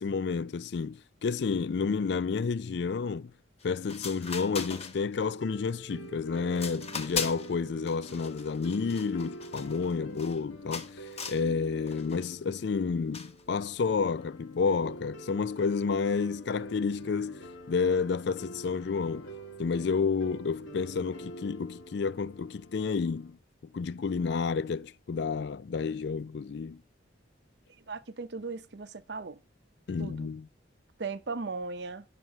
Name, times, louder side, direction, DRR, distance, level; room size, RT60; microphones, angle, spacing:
voice 1, 0.0-3.3 3.6-19.3 19.6-23.4 23.7-26.8 29.9-30.5, left 5 dB, 60° left, 0.4 m, -30 dB
sound 1, 3.6-3.7 3.9-5.3 5.7-6.1 6.5-7.5 7.9-10.4 10.7-11.5 11.9-12.3 13.1-13.4, left 5 dB, 35° left, 1.1 m, -39 dB
sound 2, 5.4-23.4, right 2 dB, 80° left, 1.7 m, -47 dB
voice 2, 27.9-29.4 30.0-30.3 31.0-32.0, right 4 dB, 60° right, 0.7 m, -37 dB
9.6 x 5.9 x 5.3 m
head